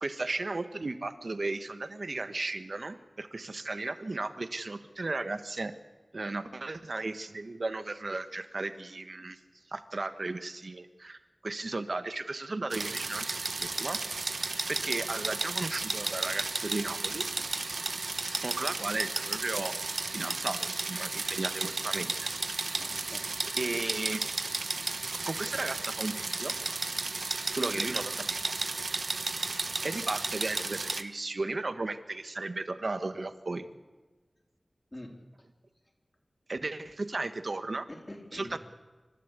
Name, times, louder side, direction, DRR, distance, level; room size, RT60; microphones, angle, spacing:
voice 1, 0.0-5.7 6.1-9.4 9.7-14.0 14.3-17.3 18.0-18.1 18.4-19.7 20.1-22.3 23.6-24.2 25.2-26.5 27.5-28.4 29.8-33.6 36.5-37.9 38.3-38.6, right 2 dB, 65° right, 10 dB, 1.3 m, -35 dB
sound 1, 12.7-31.0, right 3 dB, 80° right, 1.0 m, -33 dB
voice 2, 22.8-23.5 27.7-28.0 34.9-35.5 37.9-38.6, left 1 dB, 30° left, 1 dB, 4.0 m, -46 dB
28.0 x 13.0 x 8.3 m, 1.3 s
wide cardioid pair, 50°, 0 cm